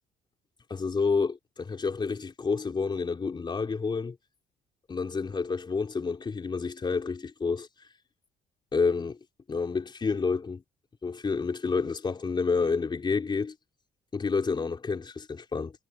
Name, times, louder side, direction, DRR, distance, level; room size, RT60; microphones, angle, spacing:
voice 1, 0.7-4.2 4.9-7.7 8.7-9.2 9.5-10.6 11.0-13.5 14.1-15.7, left 4 dB, 25° left, 3.9 m, -29 dB
cardioid pair, 110°, 17 cm